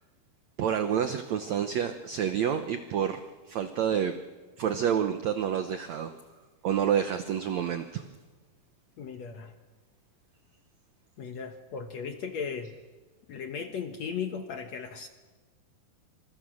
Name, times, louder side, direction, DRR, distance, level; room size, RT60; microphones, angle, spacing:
voice 1, 0.6-3.2 3.5-4.1 4.6-6.1 6.6-8.1, right 8 dB, 80° right, 8 dB, 1.5 m, -28 dB
voice 2, 9.0-9.5 11.2-12.7 13.3-15.1, left 6 dB, 60° left, 6 dB, 1.9 m, -36 dB
28.5 x 27.0 x 6.4 m, 1.3 s
omnidirectional pair, 4.5 m